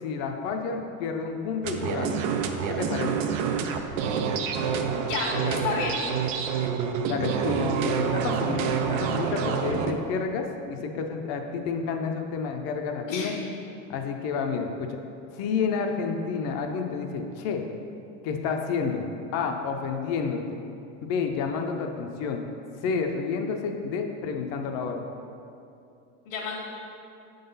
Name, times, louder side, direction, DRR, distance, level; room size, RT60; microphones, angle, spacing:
voice 1, 0.0-2.2 2.7-3.1 5.4-5.7 7.1-13.3 13.9-14.9 15.3-17.6 18.2-19.1 19.3-20.6 21.0-22.4 22.8-25.0, left 5 dB, 45° left, 4 dB, 0.6 m, -30 dB
sound 1, 1.6-9.9, right 6 dB, 80° right, 0.7 m, -27 dB
voice 2, 5.0-6.0 13.1-13.3 26.2-26.6, left 4 dB, 80° left, -4 dB, 1.4 m, -30 dB
7.5 x 3.9 x 5.4 m, 2.7 s
supercardioid pair, 160°, 37 cm